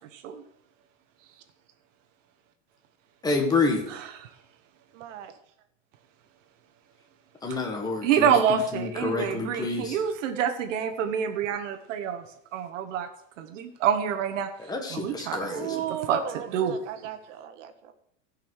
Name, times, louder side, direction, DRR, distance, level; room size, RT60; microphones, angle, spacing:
voice 1, 0.1-0.4 3.9-4.1 8.0-12.2 12.5-13.1 13.4-14.5 14.9-15.8 16.1-16.2 16.5-16.8, right 8 dB, 90° right, 5 dB, 1.3 m, -27 dB
voice 2, 3.2-3.8 7.4-10.0 14.6-15.7, left 3 dB, 10° left, 2 dB, 1.6 m, -28 dB
voice 3, 4.9-5.3 15.5-17.9, right 10 dB, 75° right, 9 dB, 1.5 m, -35 dB
15.0 x 5.6 x 6.4 m, 0.76 s
supercardioid pair, 160°, 37 cm